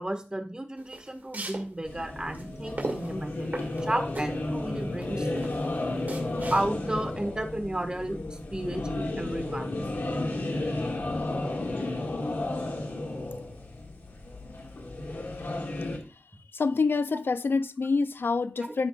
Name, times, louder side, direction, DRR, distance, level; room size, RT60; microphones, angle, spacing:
voice 1, 0.0-5.3 6.5-9.8 10.7-10.8, right 1 dB, 25° right, 1.6 m, -33 dB
sound 1, 0.8-7.0, right 2 dB, 55° right, 2.3 m, -38 dB
sound 2, 1.8-16.0, left 2 dB, 90° left, 1.9 m, -33 dB
voice 2, 16.5-18.9, left 4 dB, 75° left, 0.4 m, -27 dB
14.5 x 5.1 x 2.4 m
wide cardioid pair, 85°, 4 cm